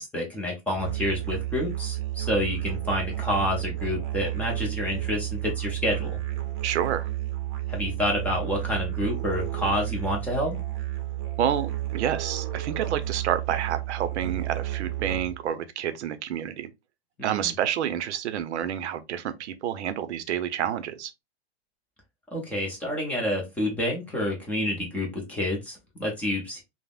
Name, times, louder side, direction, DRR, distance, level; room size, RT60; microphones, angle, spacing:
voice 1, 0.0-6.2 7.7-10.6 17.2-17.5 22.3-26.6, left 1 dB, 5° left, 0.5 m, -29 dB
Musical instrument, 0.7-15.5, right 15 dB, 45° right, 0.6 m, -31 dB
voice 2, 6.6-7.0 11.4-16.7 17.2-21.1, right 10 dB, 85° right, 0.6 m, -29 dB
3.4 x 2.0 x 2.3 m
supercardioid pair, 150°, 33 cm